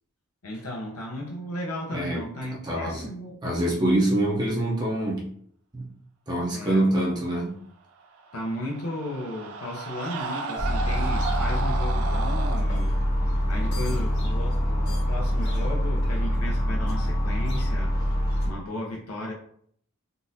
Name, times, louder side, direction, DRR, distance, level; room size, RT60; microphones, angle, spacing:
voice 1, 0.4-3.5 6.5-7.0 8.3-17.9 18.5-19.3, left 1 dB, 75° left, -2 dB, 0.7 m, -35 dB
voice 2, 1.9-2.2 2.6-3.1 3.4-5.3 5.7-5.9 6.3-7.6, right 1 dB, 20° right, -4 dB, 0.6 m, -25 dB
Screaming, 8.2-12.6, right 4 dB, 70° right, 0.4 m, -34 dB
sound 1, 10.6-18.5, equal, 50° left, 1.3 m, -25 dB
3.8 x 2.5 x 2.6 m, 0.62 s
head